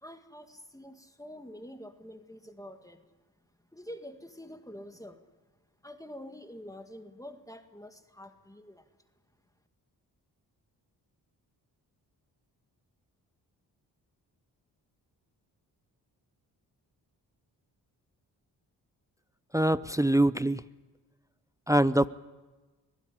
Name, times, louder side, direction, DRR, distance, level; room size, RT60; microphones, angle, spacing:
voice 1, 0.0-3.1 3.7-5.2 5.8-8.9, equal, 10° left, 7 dB, 2.1 m, -46 dB
voice 2, 19.5-20.6 21.7-22.1, right 1 dB, 10° right, 15 dB, 0.6 m, -24 dB
23.0 x 16.5 x 10.0 m, 1.2 s
supercardioid pair, 50°, 43 cm